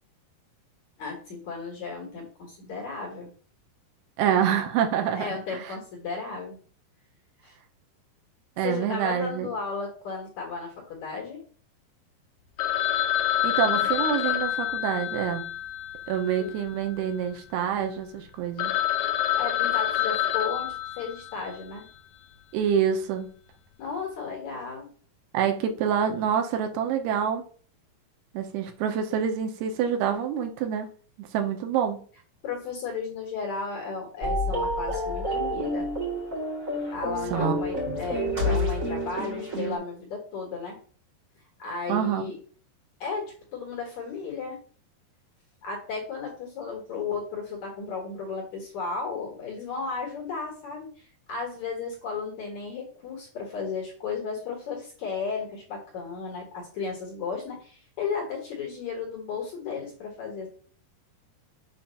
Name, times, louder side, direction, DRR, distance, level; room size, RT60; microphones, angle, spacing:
voice 1, 1.0-3.3 5.1-6.6 7.4-7.5 8.6-11.4 13.7-13.9 16.4-16.5 19.4-21.9 23.8-24.9 32.4-35.9 36.9-40.8 41.6-42.4 43.0-44.6 45.6-60.5, left 5 dB, 55° left, 2.3 m, -34 dB
voice 2, 4.2-5.4 8.6-9.5 13.4-15.5 16.1-18.7 22.5-23.3 25.3-27.4 28.3-30.9 31.2-32.0 37.3-38.0 41.9-42.3, right 8 dB, 85° right, 2.7 m, -26 dB
Telephone, 12.6-16.9 17.2-17.3 17.8-17.9 18.3-18.4 18.6-21.5, left 12 dB, 80° left, 2.1 m, -27 dB
sound 1, 34.2-39.8, equal, 60° right, 0.8 m, -29 dB
7.1 x 2.5 x 5.6 m
omnidirectional pair, 4.6 m